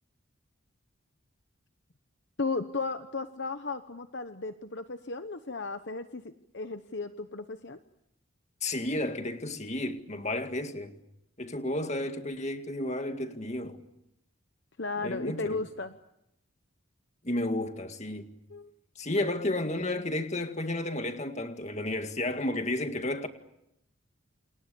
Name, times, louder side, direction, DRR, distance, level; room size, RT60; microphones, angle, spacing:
voice 1, 2.4-6.2 6.5-7.8 14.8-15.9 18.5-18.7 19.1-19.4 20.0-20.1, left 3 dB, 55° left, 1.0 m, -35 dB
voice 2, 8.6-10.9 11.4-13.8 15.0-15.6 17.2-18.3 19.0-23.3, left 1 dB, 35° left, 2.0 m, -32 dB
29.0 x 28.0 x 7.0 m
head